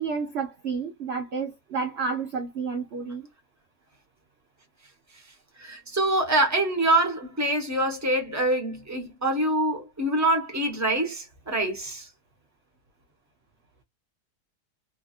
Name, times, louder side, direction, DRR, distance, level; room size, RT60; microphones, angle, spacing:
voice 1, 0.0-3.3, right 5 dB, 55° right, 0.7 m, -30 dB
voice 2, 5.6-12.1, right 1 dB, 10° right, 1.0 m, -25 dB
3.3 x 2.5 x 2.4 m
omnidirectional pair, 1.7 m